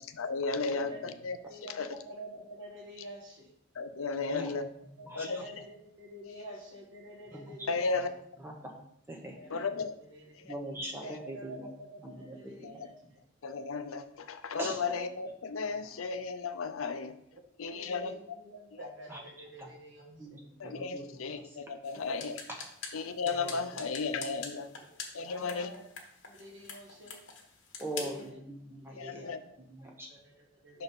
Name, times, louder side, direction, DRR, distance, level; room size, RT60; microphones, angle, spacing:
voice 1, 0.0-1.4 1.8-1.9 3.8-4.7 5.2-5.4 7.7-8.1 9.5-9.9 10.5-10.6 12.6-12.7 13.4-17.2 17.6-18.1 20.6-22.4 22.9-24.7 25.1-25.7 29.0-29.4 30.7-30.8, left 4 dB, 75° left, 9 dB, 0.6 m, -34 dB
voice 2, 0.7-1.0 1.5-3.5 5.0-8.2 9.3-10.4 10.7-13.2 17.3-20.5 24.7-24.9 25.2-25.9 26.3-27.2 27.9-28.4 28.8-29.6 30.1-30.8, right 1 dB, 60° right, 0 dB, 1.5 m, -48 dB
voice 3, 4.9-5.3 7.3-7.7 8.4-8.7 9.1-9.4 10.5-11.7 12.0-12.7 14.6-14.8 15.8-16.0 19.1-19.2 19.6-19.7 20.1-21.6 23.4-23.9 24.4-24.5 27.8-29.2 29.6-30.1, right 1 dB, 10° right, 1 dB, 0.9 m, -42 dB
sound 1, 21.8-28.3, left 5 dB, 60° left, 1.2 m, -46 dB
5.8 x 4.0 x 5.4 m, 0.72 s
head